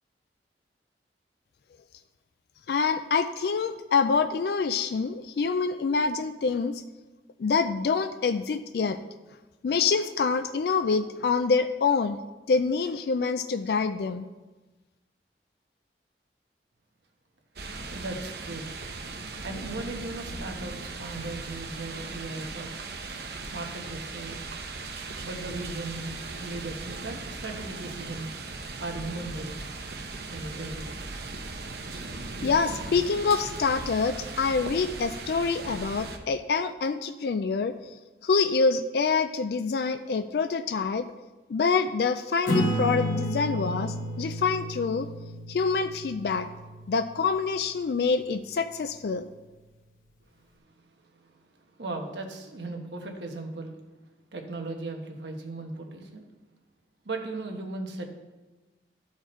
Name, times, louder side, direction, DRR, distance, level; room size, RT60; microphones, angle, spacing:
voice 1, 2.7-6.8 7.4-9.0 9.6-12.2 12.5-14.3 32.4-37.9 38.2-41.1 41.5-45.1 45.5-46.5 46.9-49.3, left 5 dB, 65° left, 10 dB, 0.3 m, -26 dB
sound 1, 17.6-36.2, right 3 dB, 65° right, 0.8 m, -38 dB
voice 2, 17.9-18.7 19.4-22.8 23.5-24.5 25.2-28.3 28.8-29.6 30.3-31.0 50.4-53.8 54.3-56.3 57.0-58.1, right 2 dB, 85° right, 3 dB, 1.2 m, -37 dB
Acoustic guitar / Strum, 42.5-47.5, equal, 45° left, 1.2 m, -31 dB
12.5 x 4.7 x 4.3 m, 1.2 s
head